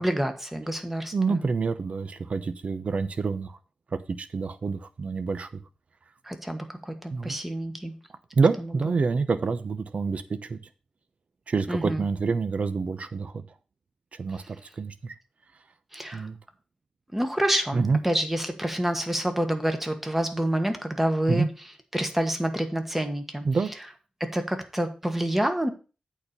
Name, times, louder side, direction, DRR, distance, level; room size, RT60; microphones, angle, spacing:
voice 1, 0.0-1.5 6.2-7.9 8.6-8.9 11.7-12.0 15.9-16.3 17.1-21.5 21.9-23.5 24.2-25.7, right 1 dB, 10° right, 7 dB, 1.3 m, -28 dB
voice 2, 1.1-3.6 3.9-5.6 7.1-7.4 8.3-10.6 11.5-13.4 14.1-15.1 16.1-16.4 17.7-18.0 21.3-21.5 23.4-23.7, right 4 dB, 55° right, 11 dB, 0.8 m, -27 dB
8.5 x 4.2 x 6.8 m, 0.34 s
wide cardioid pair, 105°, 3 cm